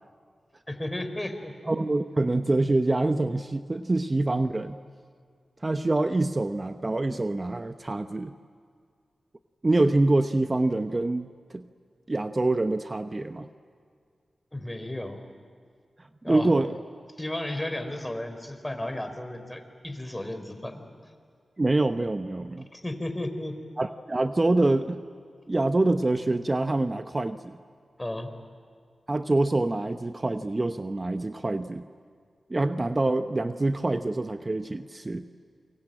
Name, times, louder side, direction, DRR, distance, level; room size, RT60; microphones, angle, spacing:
voice 1, 0.7-1.6 14.5-15.2 16.2-16.5 17.2-20.8 22.7-23.6 28.0-28.3, left 1 dB, 20° left, 8 dB, 3.8 m, -33 dB
voice 2, 1.7-4.8 5.6-8.3 9.6-11.6 12.1-13.5 16.3-16.7 21.6-22.7 23.8-25.0 25.5-27.6 29.1-31.9 32.5-35.2, right 2 dB, 35° right, 9 dB, 0.9 m, -25 dB
28.5 x 23.5 x 8.8 m, 2.1 s
cardioid pair, 45°, 0 cm